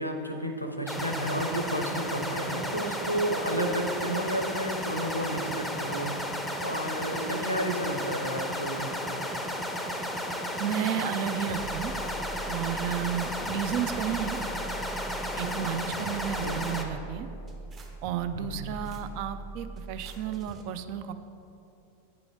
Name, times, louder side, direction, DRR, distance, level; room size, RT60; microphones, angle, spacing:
voice 1, 0.0-6.2 6.6-9.2 16.4-16.6 18.3-18.6, right 1 dB, 90° left, 4 dB, 0.6 m, -32 dB
sound 1, 0.9-16.8, equal, ahead, 0.6 m, -33 dB
voice 2, 10.6-11.9 12.5-14.4 15.4-17.3 18.0-21.1, right 10 dB, 45° right, 11 dB, 0.3 m, -32 dB
sound 2, 11.5-20.6, right 2 dB, 25° right, 0.8 m, -42 dB
9.0 x 4.9 x 3.6 m, 2.8 s
figure-of-eight pair, 90°, 0 cm